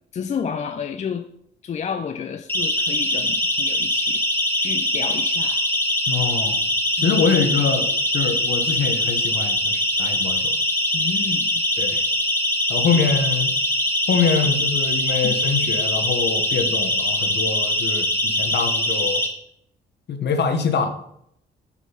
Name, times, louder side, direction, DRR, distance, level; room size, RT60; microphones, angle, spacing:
voice 1, 0.1-1.3 1.6-5.6 7.0-7.1 10.9-11.6 12.9-13.1 15.2-15.4, left 7 dB, 35° left, 8 dB, 0.4 m, -31 dB
Siren, 2.5-19.3, left 1 dB, 10° left, 1.3 m, -22 dB
voice 2, 6.1-6.6 7.0-10.6 11.8-12.0 12.7-13.5 14.1-19.2 20.1-20.9, left 5 dB, 60° left, 7 dB, 1.0 m, -24 dB
6.0 x 3.8 x 5.6 m, 0.73 s
cardioid pair, 90°, 20 cm